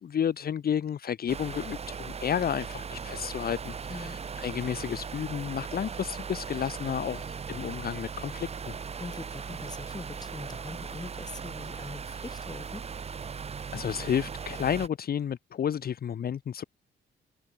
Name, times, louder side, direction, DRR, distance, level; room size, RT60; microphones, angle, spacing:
voice 1, 0.0-8.8 13.7-16.6, left 8 dB, 50° left, 1.1 m, -31 dB
sound 1, 1.3-14.9, right 6 dB, 30° right, 0.8 m, -38 dB
voice 2, 3.9-4.2 9.0-12.8, left 3 dB, 20° left, 3.3 m, -42 dB
open air
cardioid pair, 90°, 20 cm